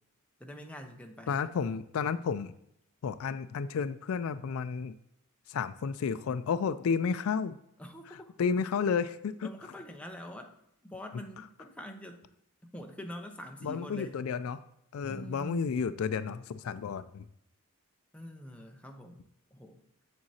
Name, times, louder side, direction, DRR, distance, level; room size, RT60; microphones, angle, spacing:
voice 1, 0.4-1.4 7.8-8.3 9.4-10.5 10.8-12.3 12.6-14.2 15.1-15.7 18.1-19.2 19.5-19.8, equal, 5° left, 3 dB, 0.7 m, -45 dB
voice 2, 1.3-2.5 3.0-5.0 5.5-7.6 8.1-9.5 13.6-14.6 14.9-17.3, left 6 dB, 70° left, 13 dB, 0.3 m, -32 dB
7.6 x 7.3 x 2.8 m, 0.79 s
head